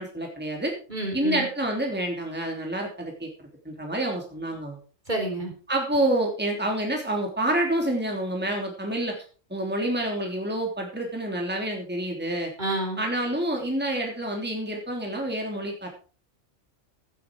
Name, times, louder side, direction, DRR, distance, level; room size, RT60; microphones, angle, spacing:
voice 1, 0.0-0.7 1.1-4.8 5.7-9.2 9.5-12.5 13.0-15.9, right 1 dB, 10° right, 1 dB, 3.0 m, -28 dB
voice 2, 0.9-1.4 5.1-5.5 12.6-13.0, right 1 dB, 40° right, 1 dB, 4.4 m, -29 dB
16.0 x 9.3 x 4.8 m, 0.39 s
omnidirectional pair, 1.3 m